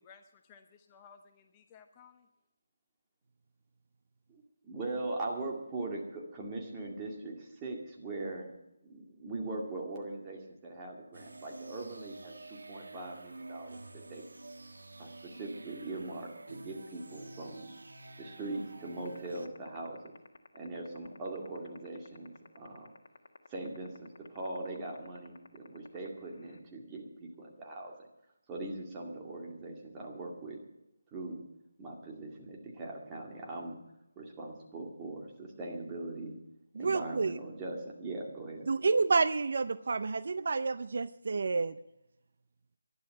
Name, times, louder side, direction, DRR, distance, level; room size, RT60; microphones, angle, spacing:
voice 1, 0.0-2.3, left 6 dB, 20° left, 5 dB, 0.8 m, -58 dB
voice 2, 4.3-8.5 8.8-14.2 15.0-17.7 18.2-20.2 20.5-22.9 23.5-27.9 28.5-30.6 31.1-31.4 31.8-33.8 34.2-36.4 36.7-38.7, right 2 dB, 15° right, -1 dB, 2.2 m, -41 dB
sound 1, 11.1-19.5, right 2 dB, 85° right, 1.3 m, -49 dB
sound 2, 19.1-26.6, left 4 dB, 55° left, 1.5 m, -52 dB
voice 3, 36.8-37.3 38.7-41.8, right 4 dB, 55° right, 15 dB, 0.5 m, -29 dB
11.5 x 11.0 x 7.8 m, 0.87 s
figure-of-eight pair, 165°, 0 cm